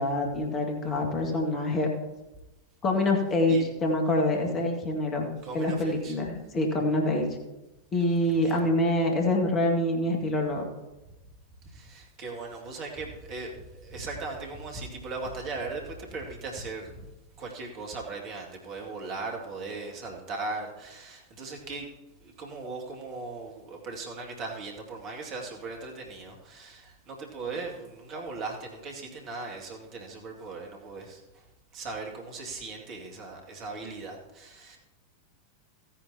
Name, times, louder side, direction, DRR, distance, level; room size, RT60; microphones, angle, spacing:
voice 1, 0.0-1.9 2.8-5.3 5.5-7.3 7.9-10.7, left 1 dB, 25° left, 2 dB, 1.8 m, -26 dB
voice 2, 5.4-6.2 8.3-8.6 11.7-17.1 17.3-21.9 22.2-31.4 31.7-34.8, right 3 dB, 35° right, 0 dB, 2.1 m, -38 dB
16.0 x 10.0 x 2.8 m, 1.0 s
figure-of-eight pair, 90°, 0 cm